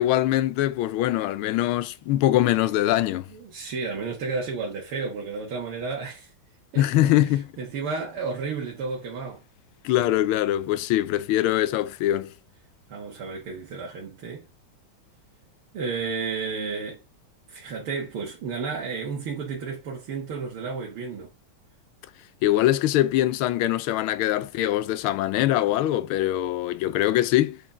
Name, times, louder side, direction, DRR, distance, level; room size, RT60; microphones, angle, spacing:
voice 1, 0.0-3.3 6.8-7.4 9.8-12.3 22.4-27.6, left 14 dB, 85° left, 1.4 m, -23 dB
voice 2, 3.3-6.3 6.7-9.4 12.9-14.5 15.7-17.0 17.5-21.3, right 4 dB, 90° right, 2.3 m, -32 dB
7.3 x 4.2 x 3.6 m
omnidirectional pair, 2.3 m